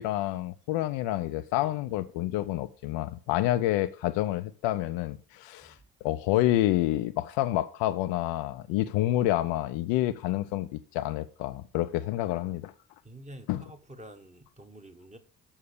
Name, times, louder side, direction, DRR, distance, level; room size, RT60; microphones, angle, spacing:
voice 1, 0.0-12.7 13.5-13.6, left 14 dB, 60° left, 0.7 m, -28 dB
voice 2, 13.0-15.2, right 1 dB, 15° right, 1.4 m, -48 dB
7.2 x 6.4 x 6.6 m
figure-of-eight pair, 50°, 50 cm